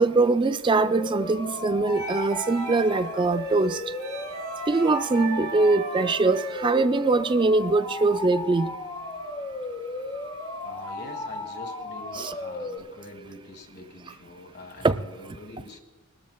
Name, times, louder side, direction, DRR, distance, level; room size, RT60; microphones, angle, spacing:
voice 1, 0.0-3.8 4.7-8.8 12.1-12.3 14.8-15.0, right 3 dB, 20° right, 0.3 m, -22 dB
sound 1, 0.8-12.8, left 2 dB, 25° left, 1.4 m, -35 dB
sound 2, 1.9-11.4, right 4 dB, 85° right, 4.4 m, -41 dB
voice 2, 10.6-15.8, left 2 dB, 45° left, 1.6 m, -44 dB
24.5 x 13.0 x 2.3 m
head